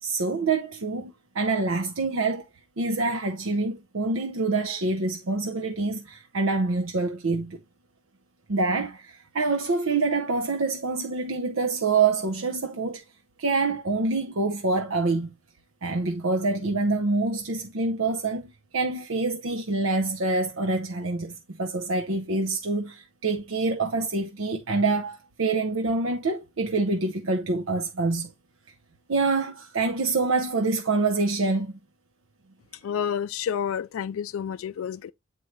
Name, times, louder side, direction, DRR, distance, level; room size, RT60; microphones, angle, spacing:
voice 1, 0.0-2.4 2.8-7.6 8.5-13.0 13.4-15.3 15.8-28.3 29.1-31.8, right 3 dB, 70° right, 0.7 m, -26 dB
voice 2, 32.8-35.1, left 8 dB, 80° left, 0.3 m, -29 dB
7.9 x 4.6 x 3.1 m
head